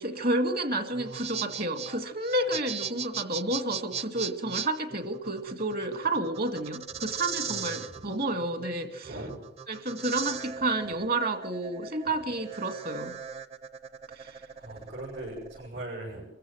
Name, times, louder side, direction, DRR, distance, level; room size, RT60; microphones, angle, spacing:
voice 1, 0.0-9.1 9.7-13.2 14.2-14.4, right 2 dB, 50° right, 2.0 m, -30 dB
sound 1, 0.9-15.7, right 6 dB, 35° right, 0.7 m, -38 dB
voice 2, 7.4-8.1 9.0-9.4 14.6-16.2, right 1 dB, 85° right, 7.3 m, -40 dB
24.5 x 15.0 x 7.8 m
head